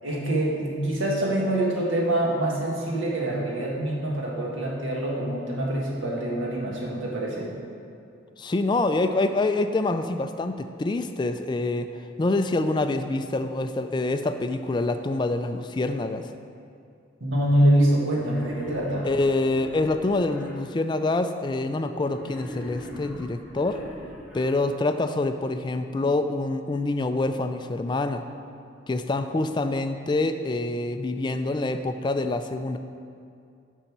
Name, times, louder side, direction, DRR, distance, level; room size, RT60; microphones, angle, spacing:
voice 1, 0.0-7.5 17.2-19.1, right 1 dB, 90° right, -3 dB, 1.6 m, -25 dB
voice 2, 8.4-16.3 19.0-23.8 24.3-28.2 28.9-32.8, left 2 dB, 25° left, 8 dB, 0.3 m, -26 dB
Wild animals, 18.0-20.5 22.0-24.5, equal, 5° right, 1.2 m, -41 dB
6.8 x 5.5 x 5.9 m, 2.4 s
head